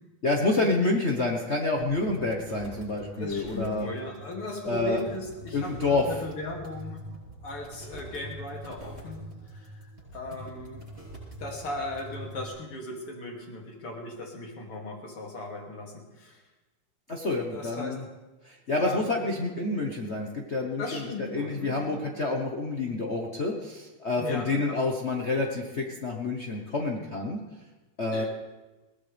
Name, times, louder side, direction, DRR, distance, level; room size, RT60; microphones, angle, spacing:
voice 1, 0.2-3.9 4.6-5.0 5.5-6.1 17.1-18.0 18.4-27.4 28.0-28.2, left 3 dB, 35° left, 0 dB, 1.3 m, -28 dB
sound 1, 1.8-12.5, right 1 dB, 20° right, 7.7 m, -44 dB
voice 2, 3.2-7.0 7.4-9.2 9.5-10.8 11.4-16.4 17.5-17.9 18.7-19.3 20.8-22.0 24.2-24.8 28.1-28.3, left 2 dB, 85° left, 0 dB, 3.7 m, -37 dB
21.5 x 17.5 x 3.5 m, 1.1 s
omnidirectional pair, 2.4 m